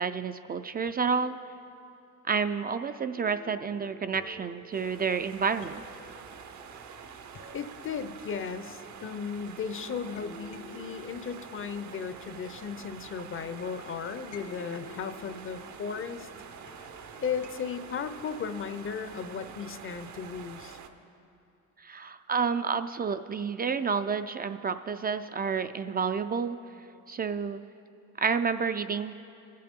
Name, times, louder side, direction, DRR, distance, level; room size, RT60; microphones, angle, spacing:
voice 1, 0.0-1.4 2.2-5.8 21.8-26.6 27.1-27.6 28.2-29.1, right 5 dB, 30° right, 9 dB, 0.4 m, -30 dB
sound 1, 3.1-9.6 10.2-13.2 14.3-18.2, left 2 dB, 70° left, 1.7 m, -52 dB
sound 2, 4.7-20.9, right 6 dB, 70° right, 0.8 m, -46 dB
voice 2, 7.5-16.3 17.2-20.8, left 6 dB, 45° left, 11 dB, 0.6 m, -36 dB
22.0 x 7.6 x 3.6 m, 2.7 s
cardioid pair, 90°, 30 cm